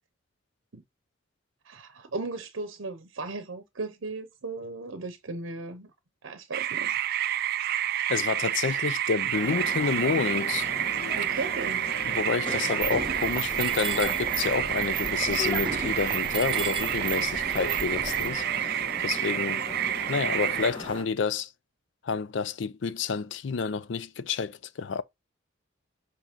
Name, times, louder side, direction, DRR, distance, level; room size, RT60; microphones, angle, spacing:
voice 1, 1.6-5.9 6.2-6.9 11.2-11.9, right 3 dB, 80° right, 0.7 m, -36 dB
sound 1, 6.5-20.7, right 11 dB, 50° right, 0.4 m, -29 dB
voice 2, 8.1-10.7 12.0-19.7 20.1-21.5 22.0-25.0, left 5 dB, 65° left, 0.4 m, -29 dB
sound 2, 9.3-21.0, left 1 dB, 25° left, 1.6 m, -38 dB
Mechanisms, 12.8-18.3, right 5 dB, 25° right, 0.7 m, -34 dB
7.4 x 2.9 x 5.1 m
head